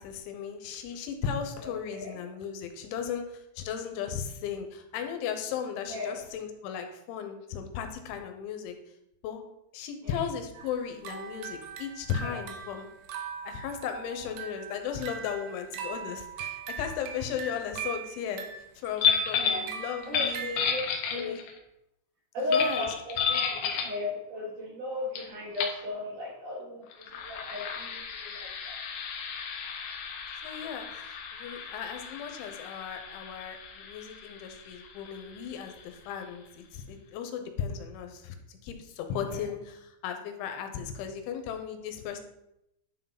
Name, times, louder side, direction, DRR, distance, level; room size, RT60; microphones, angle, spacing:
voice 1, 0.0-8.7 9.2-9.4 9.7-12.9 13.4-18.5 18.8-20.6 21.1-21.4 22.5-22.9 30.4-38.4 38.6-42.2, left 8 dB, 90° left, 6 dB, 3.3 m, -36 dB
voice 2, 1.6-2.1 5.8-6.2 10.0-10.2 12.2-12.4 19.4-19.7 20.0-20.8 21.1-21.4 22.3-28.8 39.3-39.5, left 2 dB, 55° right, -4 dB, 2.6 m, -35 dB
sound 1, 10.5-20.6, right 7 dB, 80° right, 3.2 m, -41 dB
Soda on ice, 19.0-19.7 20.0-21.6 22.5-24.0 25.1-25.2 25.5-25.8 26.9-36.2, left 6 dB, 70° left, 2.6 m, -32 dB
10.0 x 5.8 x 4.0 m, 0.83 s
omnidirectional pair, 5.3 m